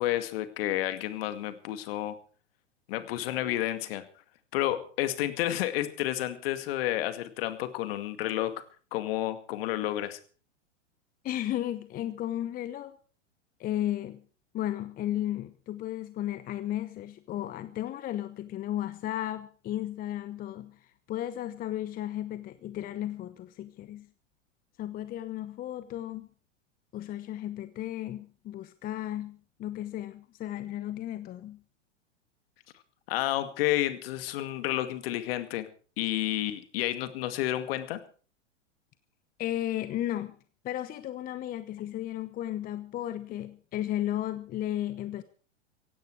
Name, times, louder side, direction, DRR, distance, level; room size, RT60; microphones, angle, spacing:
voice 1, 0.0-2.2 2.9-4.1 4.5-8.6 8.9-10.2 33.1-35.7 36.0-38.0, left 14 dB, 50° left, 2.2 m, -30 dB
voice 2, 11.2-13.0 13.6-14.2 14.5-24.1 24.8-26.3 26.9-31.6 39.4-40.4 40.6-45.2, left 12 dB, 25° left, 0.9 m, -34 dB
17.0 x 16.0 x 4.7 m
figure-of-eight pair, 100°, 37 cm